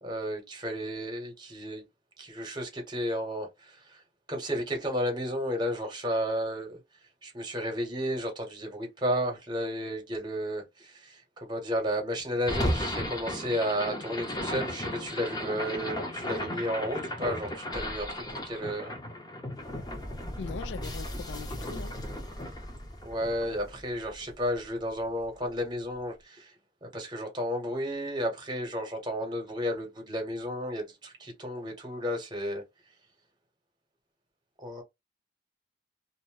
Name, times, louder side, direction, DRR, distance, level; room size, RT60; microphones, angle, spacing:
voice 1, 0.0-1.8 2.2-4.0 4.3-6.8 7.2-18.9 23.0-26.5 26.8-32.6 34.6-34.8, equal, 25° right, 1.0 m, -33 dB
sound 1, 12.4-24.6, left 1 dB, 25° left, 0.7 m, -35 dB
voice 2, 20.4-21.9, left 5 dB, 90° left, 0.4 m, -40 dB
2.6 x 2.1 x 3.2 m
head